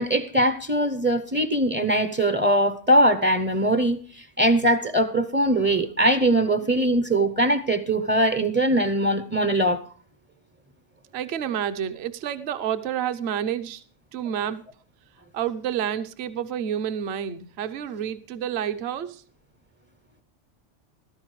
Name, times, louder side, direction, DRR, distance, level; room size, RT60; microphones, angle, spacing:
voice 1, 0.0-9.9, right 1 dB, 15° right, 0.3 m, -21 dB
voice 2, 11.1-13.8 14.1-14.6 15.3-19.2, right 9 dB, 60° right, 1.0 m, -29 dB
15.5 x 13.0 x 3.2 m
omnidirectional pair, 1.3 m